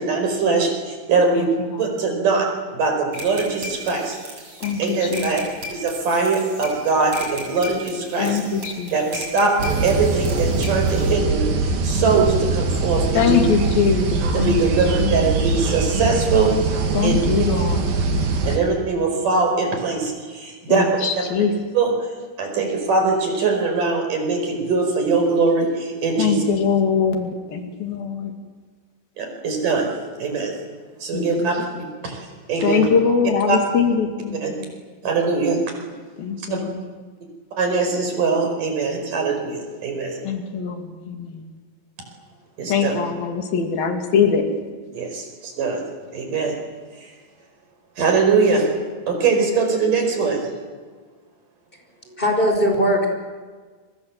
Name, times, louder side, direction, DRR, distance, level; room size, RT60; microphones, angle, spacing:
voice 1, 0.0-1.5 1.8-4.2 4.8-5.4 5.7-8.4 8.9-9.6 9.8-13.4 14.3-17.4 18.5-20.9 21.7-21.9 22.4-26.4 29.2-29.9 30.2-30.5 31.0-31.7 32.0-32.2 32.5-32.9 33.5-33.6 34.4-34.5 35.0-35.7 37.6-40.2 42.6-42.9 44.9-45.8 46.1-46.5 47.0-47.1 48.0-48.7 49.1-50.7 52.1-52.2, right 4 dB, 65° right, 3 dB, 6.6 m, -22 dB
voice 2, 1.3-1.8 4.6-5.3 8.2-9.0 13.1-14.6 15.0-15.3 16.9-17.8 20.7-21.5 26.2-28.3 31.1-31.5 31.8-31.9 32.6-34.7 36.2-36.7 40.2-41.4 42.7-44.5, left 6 dB, 85° left, 4 dB, 4.3 m, -22 dB
sound 1, 3.1-11.1, equal, 40° right, 7.8 m, -36 dB
sound 2, 9.6-18.6, right 3 dB, 85° right, 4.5 m, -22 dB
voice 3, 52.2-53.1, equal, 15° left, 3 dB, 5.3 m, -19 dB
30.0 x 24.5 x 7.6 m, 1.5 s
omnidirectional pair, 4.1 m